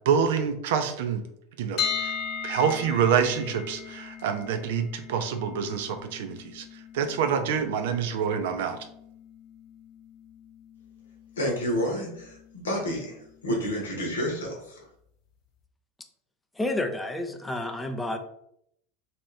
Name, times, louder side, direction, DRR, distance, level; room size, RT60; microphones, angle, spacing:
voice 1, 0.1-1.2 1.6-2.1 2.4-6.6 6.9-8.8, right 7 dB, 65° right, 8 dB, 0.4 m, -26 dB
sound 1, 1.8-13.7, left 7 dB, 50° left, 0.7 m, -39 dB
voice 2, 11.4-14.8, equal, 75° left, 0 dB, 0.9 m, -30 dB
voice 3, 16.5-18.2, left 1 dB, 10° left, 6 dB, 0.4 m, -30 dB
2.8 x 2.5 x 3.2 m, 0.72 s
figure-of-eight pair, 80°, 0 cm